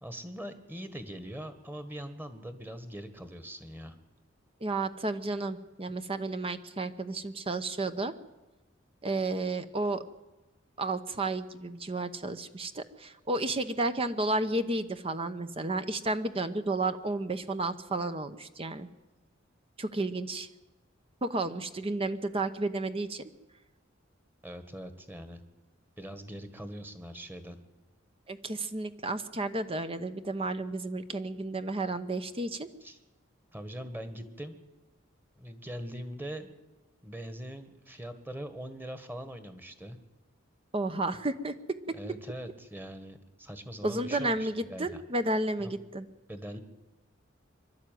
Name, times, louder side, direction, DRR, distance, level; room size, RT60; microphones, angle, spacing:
voice 1, 0.0-3.9 24.4-25.4 26.0-27.6 32.8-33.0 33.5-34.6 35.3-36.5 37.0-40.0 41.9-45.0 45.6-45.7 46.3-46.6, equal, 10° right, 9 dB, 1.6 m, -42 dB
voice 2, 4.6-8.1 9.0-10.0 10.8-18.9 19.8-20.5 21.2-23.3 28.3-32.7 40.7-42.0 43.8-46.0, right 2 dB, 30° right, 10 dB, 0.9 m, -32 dB
24.0 x 12.5 x 9.3 m, 1.1 s
head